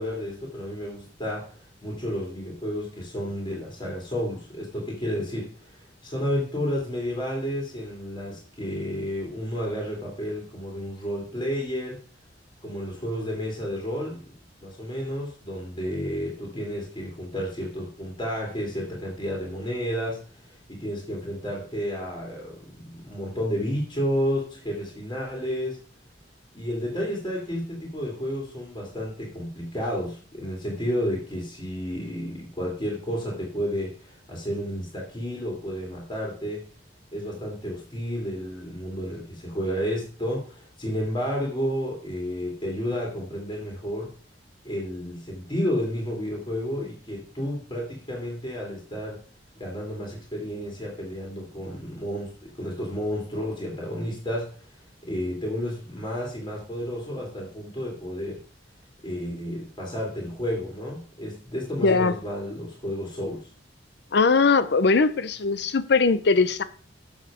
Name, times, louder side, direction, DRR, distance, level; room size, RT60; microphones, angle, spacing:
voice 1, 0.0-1.5 1.8-12.0 12.6-14.2 14.6-25.8 26.5-36.6 37.1-44.1 44.6-49.2 49.6-54.5 55.0-58.4 59.0-63.5, equal, 25° left, 2.8 m, -31 dB
voice 2, 61.8-62.1 64.1-66.6, left 4 dB, 65° left, 0.6 m, -20 dB
7.4 x 7.4 x 5.0 m
head